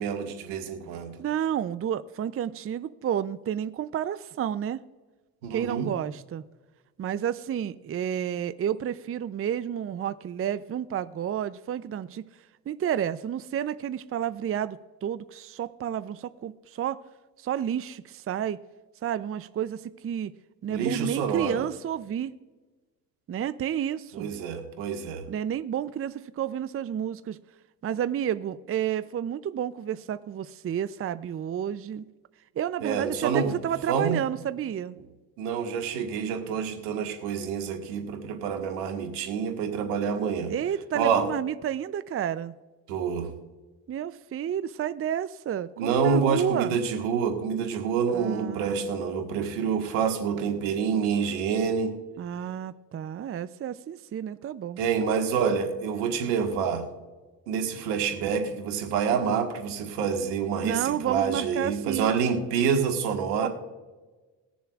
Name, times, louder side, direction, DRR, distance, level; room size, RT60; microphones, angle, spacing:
voice 1, 0.0-1.1 5.4-5.9 20.7-21.6 24.1-25.2 32.8-33.5 33.9-34.2 35.4-40.5 40.9-41.3 42.9-43.3 45.8-51.9 54.8-56.9 57.5-63.5, right 6 dB, 90° right, 5 dB, 1.6 m, -27 dB
voice 2, 1.2-4.8 5.5-6.4 7.0-12.2 12.7-17.0 17.4-18.6 19.0-20.3 20.6-22.3 23.3-24.3 25.3-27.4 27.8-32.0 32.6-35.0 40.5-42.6 43.9-46.8 48.1-48.9 52.2-54.8 60.6-62.1 63.4-63.5, right 9 dB, 30° right, 15 dB, 0.5 m, -30 dB
21.0 x 7.0 x 2.4 m, 1.2 s
supercardioid pair, 65°, 44 cm